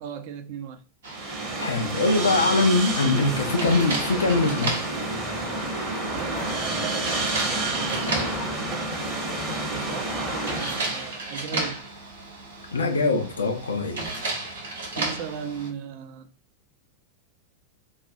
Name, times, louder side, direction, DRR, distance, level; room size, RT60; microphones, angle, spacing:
voice 1, 0.0-0.8 6.0-7.0 8.2-8.6 9.6-11.8 14.9-16.3, right 8 dB, 50° right, 0.4 m, -37 dB
sound 1, 1.0-15.7, right 2 dB, 65° right, 0.8 m, -34 dB
sound 2, 1.1-11.2, right 3 dB, 30° right, 0.8 m, -30 dB
voice 2, 1.6-4.9 12.7-14.0, left 3 dB, 70° left, 0.4 m, -23 dB
sound 3, 2.9-10.8, left 3 dB, 25° left, 0.5 m, -38 dB
2.4 x 2.2 x 2.7 m
figure-of-eight pair, 90°, 0 cm